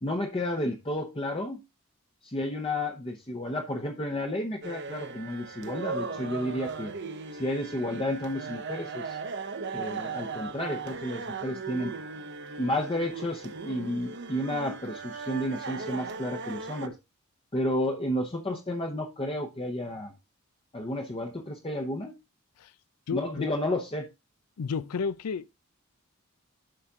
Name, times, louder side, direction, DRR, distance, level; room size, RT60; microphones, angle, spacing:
voice 1, 0.0-1.6 2.2-6.9 7.3-9.2 9.7-11.9 12.6-16.9 17.5-20.1 20.7-22.1 23.1-24.1, left 1 dB, 25° left, 0.8 m, -31 dB
sound 1, 4.6-16.9, right 4 dB, 50° right, 0.8 m, -38 dB
voice 2, 23.1-23.5 24.6-25.5, left 5 dB, 85° left, 0.5 m, -32 dB
11.5 x 4.2 x 3.7 m
head